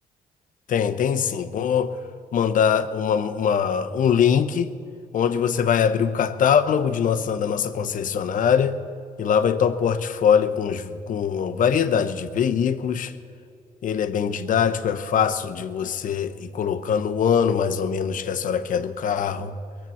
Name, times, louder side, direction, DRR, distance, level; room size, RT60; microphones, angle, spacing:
voice 1, 0.7-1.9 2.3-4.7 5.1-8.7 9.2-13.1 13.8-19.5, left 7 dB, 65° left, 9 dB, 0.9 m, -22 dB
21.5 x 7.7 x 7.1 m, 2.5 s
cardioid pair, 95°, 15 cm